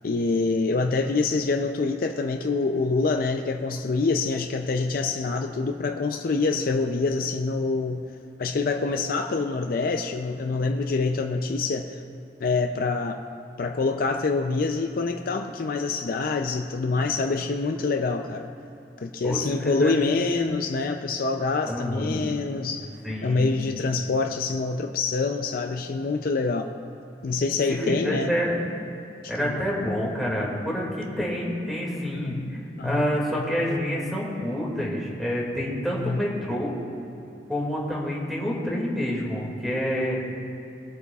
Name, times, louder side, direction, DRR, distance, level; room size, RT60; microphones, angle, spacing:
voice 1, 0.0-8.0 8.4-12.0 12.4-13.2 13.6-18.5 19.0-22.9 23.2-26.7 27.2-28.3 29.4-29.6 32.1-33.4 36.0-36.2, left 3 dB, 55° left, 5 dB, 0.4 m, -26 dB
voice 2, 19.2-20.4 21.6-22.2 23.0-23.6 27.7-28.7 29.3-32.6 32.8-36.7 37.5-40.2, equal, ahead, -5 dB, 2.1 m, -28 dB
23.0 x 8.1 x 2.4 m, 2.8 s
head